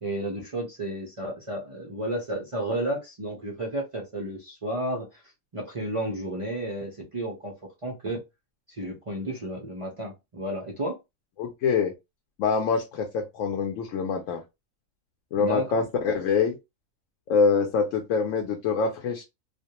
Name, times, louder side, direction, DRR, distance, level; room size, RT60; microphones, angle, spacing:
voice 1, 0.0-5.2 5.5-7.5 7.8-8.2 8.8-11.0 15.4-15.9, right 1 dB, 60° right, 0.3 m, -32 dB
voice 2, 11.4-11.9 12.4-14.4 15.3-16.6 17.3-19.2, left 5 dB, 70° left, 0.9 m, -25 dB
2.4 x 2.1 x 2.8 m
omnidirectional pair, 1.4 m